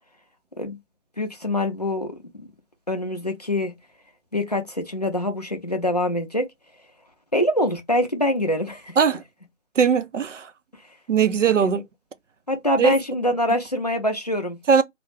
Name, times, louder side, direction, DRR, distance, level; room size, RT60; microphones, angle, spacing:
voice 1, 1.2-2.1 2.4-2.5 2.9-3.7 4.3-6.5 7.3-9.0 11.6-11.7 12.5-14.8, left 1 dB, 35° left, 0.4 m, -24 dB
voice 2, 9.8-10.5 11.1-11.8 12.8-13.0 14.7-14.8, right 6 dB, 75° right, 0.5 m, -19 dB
2.4 x 2.1 x 3.1 m
figure-of-eight pair, 150°, 37 cm